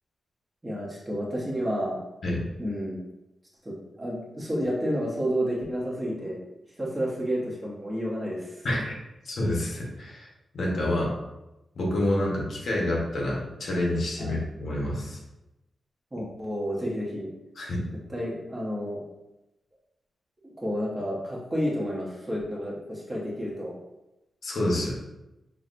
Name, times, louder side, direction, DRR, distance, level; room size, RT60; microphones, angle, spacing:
voice 1, 0.6-2.0 2.6-3.0 3.6-6.4 6.8-8.6 14.2-14.4 16.1-17.3 18.1-19.0 20.4-23.7, equal, 20° right, -4 dB, 1.0 m, -30 dB
voice 2, 9.2-10.3 10.5-11.1 11.8-15.2 17.6-17.8 24.4-24.9, left 1 dB, 65° left, -3 dB, 1.1 m, -28 dB
5.7 x 2.4 x 2.5 m, 0.94 s
wide cardioid pair, 115°, 0 cm